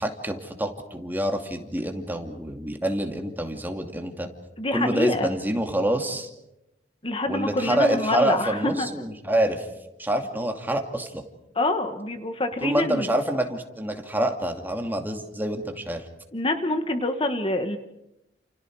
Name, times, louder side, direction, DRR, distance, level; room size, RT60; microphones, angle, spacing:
voice 1, 0.0-4.3 4.7-6.3 7.3-9.7 10.0-11.2 12.6-16.1, right 1 dB, 10° right, 4 dB, 2.5 m, -26 dB
voice 2, 4.6-5.3 7.0-8.9 11.5-13.1 16.3-17.8, left 2 dB, 30° left, 7 dB, 1.5 m, -26 dB
30.0 x 29.0 x 4.8 m, 0.87 s
head